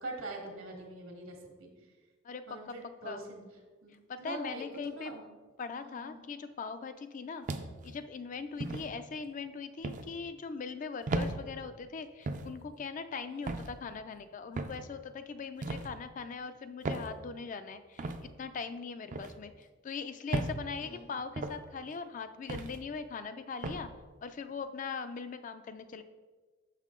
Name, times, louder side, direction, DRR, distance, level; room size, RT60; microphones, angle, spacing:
voice 1, 0.0-1.7 2.5-3.4 3.8-3.9 4.2-5.2 5.8-6.2 8.6-8.9 13.3-13.5 20.8-21.1, right 1 dB, 75° right, 1 dB, 1.4 m, -43 dB
voice 2, 2.2-2.7 3.0-3.2 4.1-5.1 5.6-7.5 7.8-23.9 24.2-26.0, left 5 dB, 40° left, 10 dB, 0.3 m, -41 dB
sound 1, 7.5-7.9 8.6-8.9 9.8-10.1 11.1-11.3 12.3-12.5 13.5-13.7 14.6-14.8 15.6-15.9 16.8-17.1 18.0-18.2 19.1-19.3 20.3-20.6 21.4-21.6 22.5-22.8 23.6-23.8, right 2 dB, 40° right, 0.4 m, -35 dB
6.4 x 5.6 x 3.7 m, 1.4 s
head